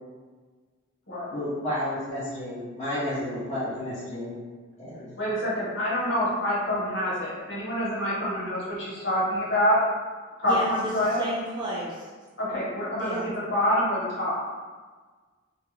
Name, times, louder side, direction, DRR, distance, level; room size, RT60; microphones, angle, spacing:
voice 1, 1.3-4.4 4.8-5.1, left 1 dB, 35° left, -10 dB, 0.5 m, -31 dB
voice 2, 5.2-9.8 10.4-11.2 12.4-14.4, left 1 dB, 55° left, -8 dB, 1.0 m, -26 dB
voice 3, 10.5-12.1 13.0-13.3, equal, 20° right, -6 dB, 0.4 m, -32 dB
2.3 x 2.2 x 3.0 m, 1.4 s
head